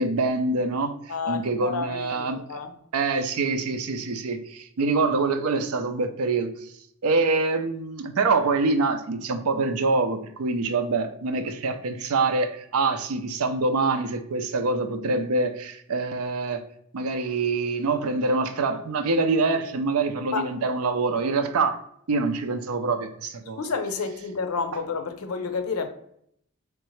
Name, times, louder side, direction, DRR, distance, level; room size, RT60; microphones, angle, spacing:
voice 1, 0.0-0.9 1.3-2.4 2.9-6.5 7.0-16.6 16.9-21.8 22.1-23.6, right 3 dB, 85° right, 0.5 m, -25 dB
voice 2, 1.1-2.7 20.3-20.5 23.5-25.9, left 5 dB, 90° left, 0.6 m, -30 dB
3.8 x 3.3 x 3.1 m
head